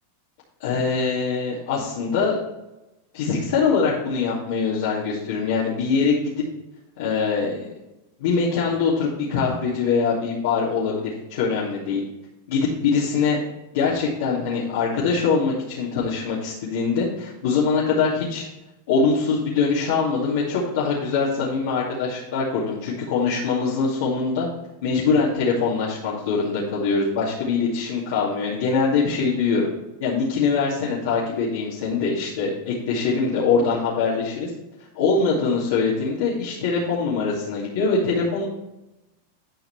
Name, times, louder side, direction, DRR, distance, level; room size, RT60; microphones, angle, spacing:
voice 1, 0.6-2.4 3.1-6.1 7.0-7.7 8.2-12.0 12.5-13.4 13.7-18.5 18.9-24.5 24.8-29.7 30.0-34.5 34.9-38.5, left 5 dB, 75° left, -7 dB, 2.5 m, -23 dB
11.5 x 5.3 x 3.3 m, 0.97 s
hypercardioid pair, 120°, 0 cm